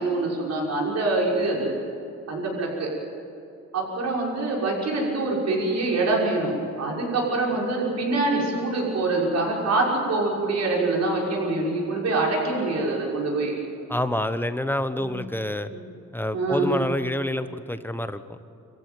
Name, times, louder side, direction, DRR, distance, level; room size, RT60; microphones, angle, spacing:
voice 1, 0.0-1.7 2.3-2.9 3.7-13.6 15.0-15.1 15.7-15.8 16.3-16.7, right 2 dB, 60° right, -2 dB, 6.1 m, -25 dB
voice 2, 13.9-15.7 16.1-18.2, left 1 dB, 5° left, 10 dB, 1.0 m, -27 dB
26.0 x 15.0 x 9.2 m, 2.6 s
cardioid pair, 90°, 30 cm